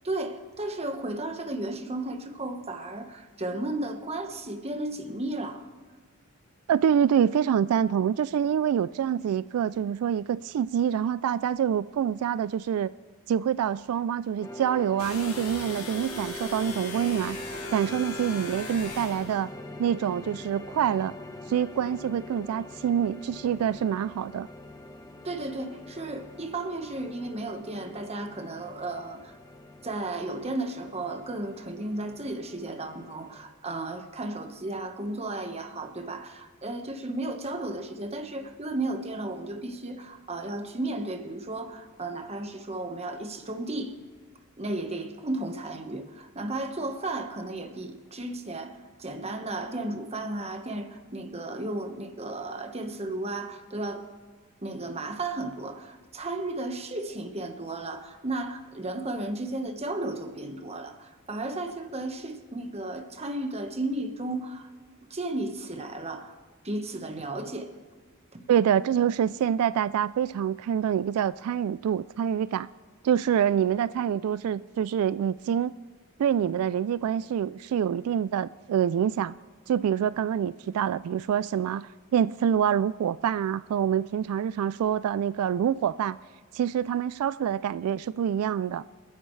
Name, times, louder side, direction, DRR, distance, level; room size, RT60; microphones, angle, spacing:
voice 1, 0.0-5.6 25.2-29.3 29.8-43.9 44.6-54.0 54.6-64.7 65.1-66.4 66.6-67.7 68.3-68.5, right 2 dB, 30° right, 1.3 m, -34 dB
voice 2, 6.7-12.9 13.3-17.4 17.7-19.5 19.8-21.1 21.5-24.5 68.5-72.7 73.0-75.7 76.2-79.4 79.7-86.2 86.5-88.8, right 9 dB, 90° right, 0.3 m, -26 dB
sound 1, 14.4-33.4, left 1 dB, 15° left, 1.1 m, -44 dB
sound 2, 15.0-19.4, left 3 dB, 85° left, 2.9 m, -39 dB
28.5 x 10.0 x 3.2 m
head